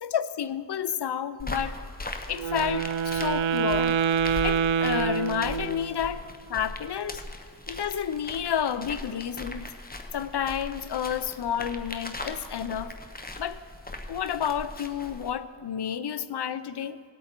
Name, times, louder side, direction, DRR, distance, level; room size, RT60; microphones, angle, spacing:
voice 1, 0.0-1.8 2.3-4.0 4.4-7.2 7.7-9.7 10.1-13.0 13.4-13.6 14.1-17.0, left 8 dB, 60° left, 14 dB, 0.5 m, -30 dB
sound 1, 1.4-15.3, left 2 dB, 20° left, 0.9 m, -39 dB
Wind instrument woodwind instrument, 2.3-6.0, right 7 dB, 75° right, 0.5 m, -26 dB
18.0 x 8.4 x 4.4 m, 2.2 s
wide cardioid pair, 80°, 48 cm